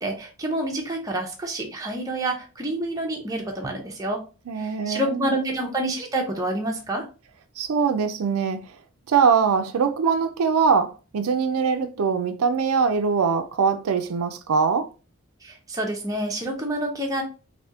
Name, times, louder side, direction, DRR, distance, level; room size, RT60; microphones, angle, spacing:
voice 1, 0.0-4.2 4.5-7.1 15.4-17.2, right 1 dB, 15° right, 0.6 m, -28 dB
voice 2, 4.5-5.6 7.6-8.7 9.1-14.9, right 6 dB, 85° right, 0.4 m, -22 dB
3.4 x 2.7 x 2.7 m
head